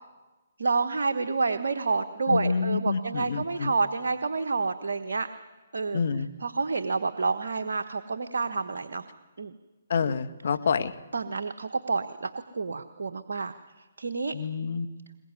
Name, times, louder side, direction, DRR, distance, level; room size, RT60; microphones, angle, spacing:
voice 1, 0.6-5.3 5.7-6.0 6.4-9.0 9.4-9.5 11.1-14.3, right 4 dB, 70° right, 7 dB, 1.2 m, -29 dB
voice 2, 2.3-3.7 5.9-6.3 9.9-10.9 14.3-14.9, left 5 dB, 60° left, 11 dB, 1.5 m, -27 dB
21.5 x 21.5 x 9.8 m, 1.2 s
figure-of-eight pair, 135°, 0 cm